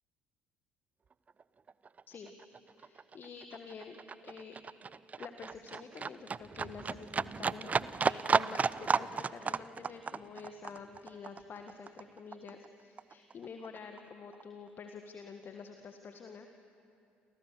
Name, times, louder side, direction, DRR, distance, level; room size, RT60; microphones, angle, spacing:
Livestock farm animals working animals, 1.3-1.4 1.7-12.7 13.0-14.0 14.3-14.4, right 5 dB, 25° right, 0.5 m, -34 dB
voice 1, 2.8-4.6 5.2-16.5, left 5 dB, 40° left, 6 dB, 1.6 m, -48 dB
29.0 x 27.5 x 6.8 m, 2.7 s
figure-of-eight pair, 50°, 5 cm